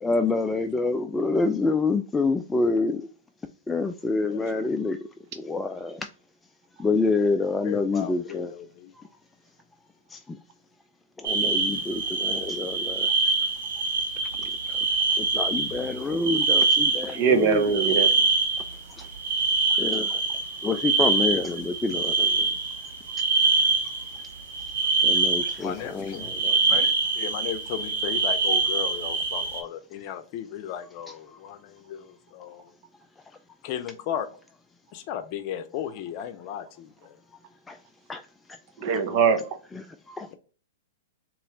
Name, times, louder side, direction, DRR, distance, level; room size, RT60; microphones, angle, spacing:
voice 1, 0.0-3.0 3.7-5.0 5.4-6.1 6.8-8.5 10.1-10.4 11.2-13.1 14.4-14.5 15.2-17.8 19.7-20.2 20.6-22.5 25.0-26.6 37.7-37.8 38.1-38.2 39.7-40.3, left 3 dB, 10° left, 0.3 m, -27 dB
voice 2, 7.2-8.9 25.6-32.7 33.6-34.3 34.9-37.2, left 10 dB, 45° left, 0.6 m, -35 dB
sound 1, 11.2-18.8 19.0-25.6 26.1-29.6, right 3 dB, 75° right, 1.2 m, -25 dB
voice 3, 17.1-18.1 38.8-39.5, right 6 dB, 45° right, 0.8 m, -22 dB
4.2 x 3.0 x 3.7 m
hypercardioid pair, 115°, 0 cm